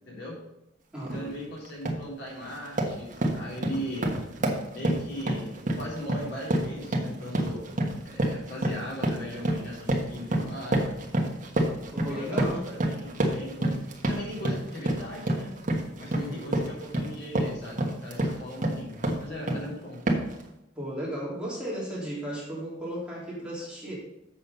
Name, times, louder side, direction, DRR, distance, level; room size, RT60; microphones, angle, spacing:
voice 1, 0.1-0.4 1.0-4.1 4.7-7.6 8.0-10.9 12.0-15.5 16.0-18.9 19.2-20.0, equal, 60° left, -4 dB, 3.4 m, -38 dB
voice 2, 0.9-1.3 11.9-12.7 16.1-16.6 20.8-24.0, equal, 5° right, -6 dB, 3.1 m, -35 dB
sound 1, 1.1-1.3 1.7-2.1 2.4-19.7 20.1-20.4, right 1 dB, 45° right, 1.4 m, -29 dB
7.4 x 7.1 x 5.4 m, 0.87 s
head